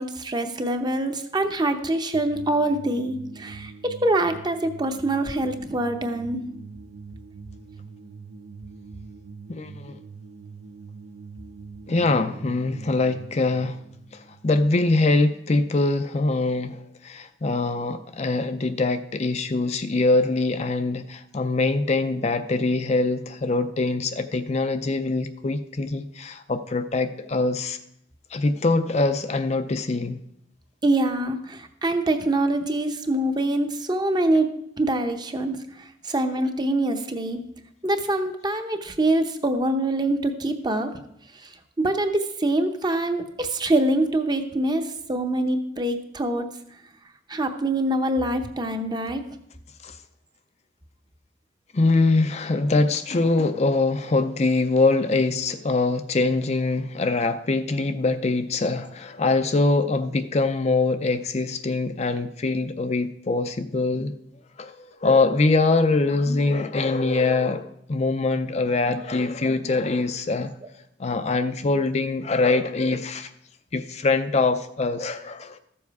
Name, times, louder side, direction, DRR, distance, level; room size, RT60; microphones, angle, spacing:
voice 1, 0.0-6.4 30.8-34.5 34.8-37.4 37.8-40.9 41.4-41.5 41.8-46.5 47.3-49.2, right 1 dB, 25° right, 7 dB, 0.8 m, -24 dB
sound 1, 2.1-15.2, right 5 dB, 70° right, 0.7 m, -43 dB
voice 2, 9.5-10.0 11.9-13.8 14.1-27.8 28.3-30.2 49.8-50.0 51.7-64.1 64.6-70.5 71.0-73.3 73.7-75.6, left 3 dB, 35° left, 9 dB, 0.5 m, -23 dB
13.5 x 7.1 x 4.7 m, 0.77 s
head